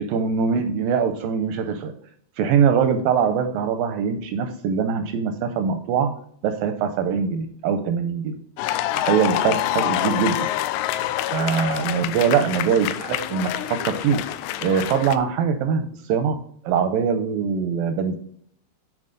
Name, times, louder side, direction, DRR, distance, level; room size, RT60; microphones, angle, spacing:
voice 1, 0.1-1.9 2.4-6.1 6.4-8.4 9.0-10.4 11.3-14.2 14.6-16.4 16.6-18.2, right 6 dB, 80° right, 7 dB, 2.1 m, -22 dB
sound 1, 8.6-15.2, left 13 dB, 85° left, 2.5 m, -26 dB
9.8 x 4.4 x 3.8 m, 0.62 s
omnidirectional pair, 4.6 m